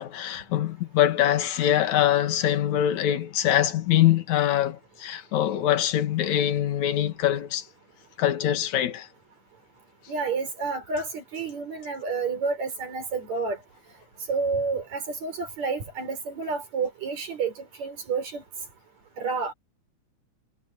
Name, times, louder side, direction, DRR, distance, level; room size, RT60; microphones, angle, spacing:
voice 1, 0.0-7.7 8.2-9.1, left 11 dB, 70° left, 2.9 m, -23 dB
voice 2, 10.1-13.6 14.3-18.4 19.2-19.5, right 4 dB, 60° right, 5.8 m, -30 dB
omnidirectional pair, 3.6 m